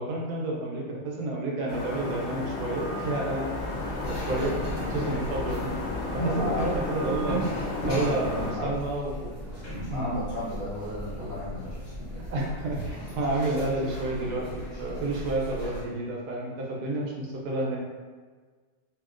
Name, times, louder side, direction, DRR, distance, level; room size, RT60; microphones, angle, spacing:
voice 1, 0.0-3.5 4.0-4.6 4.9-5.7 6.1-7.4 7.8-9.3 9.9-10.2 12.3-17.8, right 2 dB, 80° right, -2 dB, 1.2 m, -30 dB
sound 1, 1.7-8.5, left 2 dB, 65° left, 0.8 m, -33 dB
sound 2, 3.6-15.8, equal, 35° left, 0.9 m, -36 dB
voice 2, 6.2-6.7 7.8-8.7 9.8-11.8 12.1-12.2 14.8-15.0, left 1 dB, 55° right, -9 dB, 0.6 m, -35 dB
2.8 x 2.7 x 2.4 m, 1.5 s
omnidirectional pair, 1.8 m